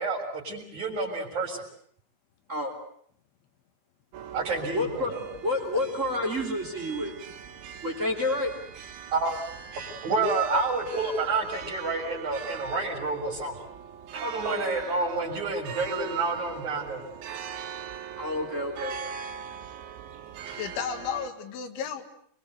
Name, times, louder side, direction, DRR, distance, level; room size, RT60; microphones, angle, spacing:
voice 1, 0.0-1.6 4.3-5.2 9.1-9.4 10.0-13.5 14.1-17.0, right 3 dB, 40° right, -1 dB, 4.6 m, -29 dB
sound 1, 4.1-21.3, right 7 dB, 80° right, 4.1 m, -41 dB
voice 2, 4.7-5.2 5.4-7.1 7.8-8.5 14.4-14.6 18.2-19.1, left 1 dB, 20° right, 2 dB, 2.8 m, -29 dB
voice 3, 20.5-22.0, left 7 dB, 85° left, 6 dB, 4.1 m, -33 dB
25.5 x 23.0 x 8.0 m, 0.65 s
omnidirectional pair, 5.3 m